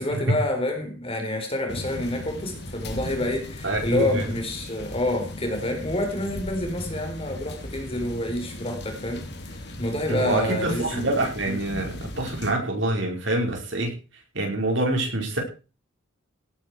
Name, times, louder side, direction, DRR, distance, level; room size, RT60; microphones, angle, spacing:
voice 1, 0.0-11.1 11.4-11.6, left 1 dB, 30° left, 4.4 m, -28 dB
sound 1, 1.7-12.5, left 1 dB, 55° left, 3.1 m, -37 dB
voice 2, 3.6-4.3 10.1-13.9 14.3-15.4, right 1 dB, 65° right, 5.5 m, -26 dB
17.5 x 9.9 x 4.9 m
head